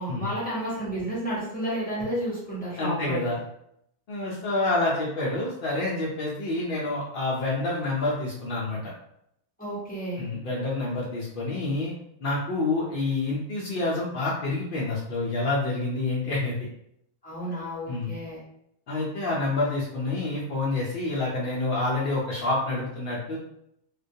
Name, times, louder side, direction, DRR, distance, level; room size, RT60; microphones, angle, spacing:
voice 1, 0.0-3.3 9.6-10.2 17.2-18.4, right 1 dB, 10° left, -8 dB, 0.4 m, -31 dB
voice 2, 2.8-3.4 4.1-8.9 10.2-11.9 12.2-16.6 17.9-18.1 18.9-23.4, left 2 dB, 80° left, -5 dB, 0.5 m, -28 dB
2.2 x 2.2 x 2.6 m, 0.76 s
omnidirectional pair, 1.5 m